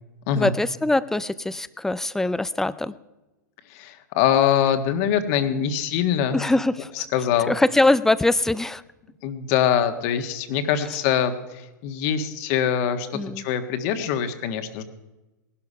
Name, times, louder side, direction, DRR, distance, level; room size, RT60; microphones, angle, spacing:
voice 1, 0.4-2.9 6.3-6.9 7.5-8.8 13.1-13.4, left 2 dB, 5° left, 17 dB, 0.5 m, -22 dB
voice 2, 3.7-6.5 7.1-7.5 9.2-14.8, left 9 dB, 50° left, 7 dB, 1.6 m, -23 dB
19.5 x 11.5 x 5.6 m, 1.1 s
hypercardioid pair, 105°, 11 cm